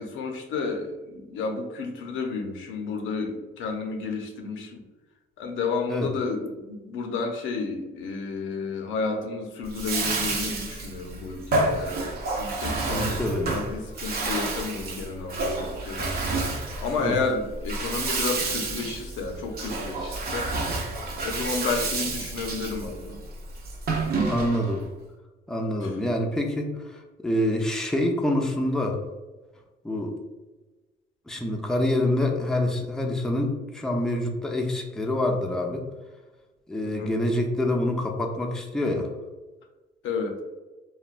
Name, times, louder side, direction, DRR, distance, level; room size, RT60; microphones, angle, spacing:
voice 1, 0.0-4.8 5.4-13.2 13.5-16.1 16.8-20.5 21.2-23.2 25.8-26.0 36.8-37.1 40.0-40.4, left 4 dB, 85° left, 4 dB, 0.5 m, -31 dB
Bathtub (filling or washing), 9.6-24.8, right 3 dB, 50° right, 0.5 m, -29 dB
voice 2, 12.8-13.5 17.0-17.2 24.3-24.8 25.5-29.0 29.8-30.1 31.3-35.8 36.7-39.1, left 1 dB, 5° left, 1 dB, 0.4 m, -26 dB
3.1 x 2.2 x 2.4 m, 1.2 s
cardioid pair, 90°, 20 cm